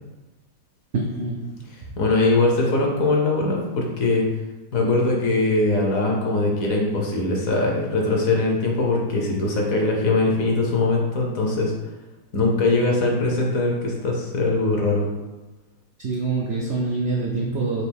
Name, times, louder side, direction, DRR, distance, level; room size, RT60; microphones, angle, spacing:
voice 1, 0.9-2.0 16.0-17.8, right 3 dB, 80° right, -2 dB, 0.6 m, -26 dB
voice 2, 2.0-4.3 4.7-11.7 12.3-15.1, left 2 dB, 65° left, -1 dB, 1.0 m, -21 dB
4.4 x 2.7 x 3.3 m, 1.1 s
omnidirectional pair, 1.8 m